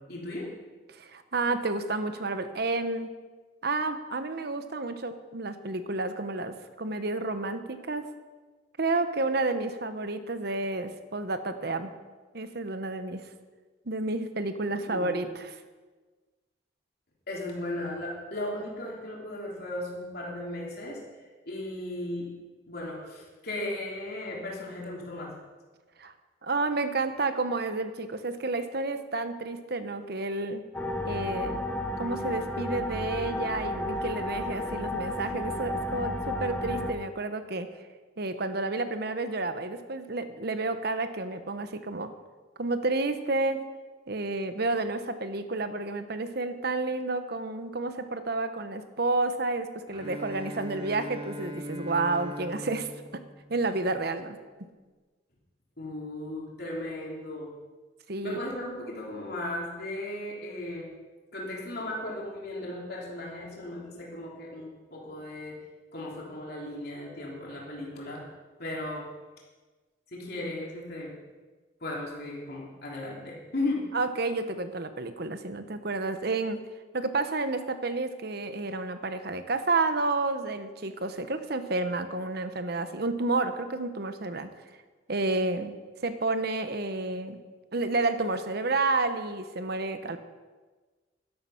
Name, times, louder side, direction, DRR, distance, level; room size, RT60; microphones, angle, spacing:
voice 1, 0.1-0.5 14.9-15.3 17.3-21.0 21.4-22.3 22.7-25.3 55.8-57.5 58.2-60.9 61.3-65.6 65.9-68.3 68.6-69.1 70.1-71.2 71.8-73.9, left 1 dB, 55° left, -3 dB, 3.3 m, -36 dB
voice 2, 0.9-3.1 3.6-8.1 8.8-11.9 12.3-13.2 13.9-15.6 26.0-26.1 26.4-30.6 31.1-31.6 32.0-37.7 38.2-42.1 42.6-43.6 44.1-52.9 53.5-54.4 58.1-58.4 73.9-76.6 76.9-84.5 85.1-85.8 86.0-87.4 87.7-90.2, right 3 dB, 55° right, 9 dB, 1.0 m, -30 dB
sound 1, 30.7-36.9, left 1 dB, 10° left, 0.9 m, -32 dB
Bowed string instrument, 49.9-54.0, left 1 dB, 25° right, 1.9 m, -40 dB
12.0 x 11.5 x 5.8 m, 1.3 s
head